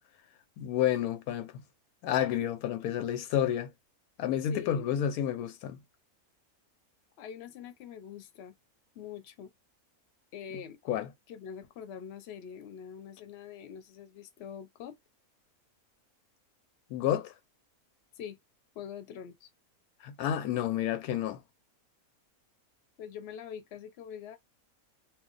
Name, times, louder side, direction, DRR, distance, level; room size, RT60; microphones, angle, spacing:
voice 1, 0.6-1.6 2.0-3.7 4.2-5.8 10.9-11.1 16.9-17.3 20.0-21.4, left 10 dB, 90° left, 1.1 m, -30 dB
voice 2, 4.5-4.9 7.2-8.5 8.9-9.5 10.3-10.8 11.3-15.0 18.1-18.4 18.7-19.5 23.0-24.4, left 8 dB, 55° left, 0.8 m, -44 dB
2.4 x 2.3 x 3.8 m
omnidirectional pair, 1.5 m